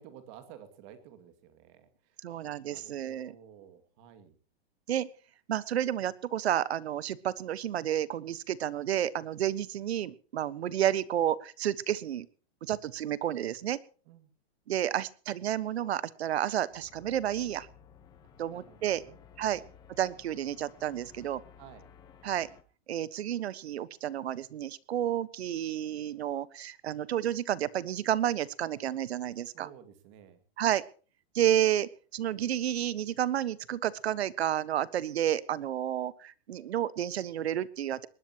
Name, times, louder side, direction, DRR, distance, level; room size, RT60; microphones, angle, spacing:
voice 1, 0.0-2.2 2.6-4.4 14.1-14.3 18.5-19.2 19.5-19.6 21.6-21.9 29.5-30.4, right 9 dB, 30° right, 9 dB, 2.3 m, -52 dB
voice 2, 2.2-3.3 4.9-5.1 5.5-12.3 12.6-13.8 14.7-17.7 18.4-19.0 19.4-19.6 20.0-21.4 22.2-22.5 22.9-29.7 30.6-30.8 31.3-38.1, right 11 dB, 80° right, 17 dB, 1.4 m, -31 dB
sound 1, 16.7-22.6, left 8 dB, 15° left, 1.2 m, -56 dB
20.0 x 19.5 x 3.0 m, 0.37 s
supercardioid pair, 180°, 32 cm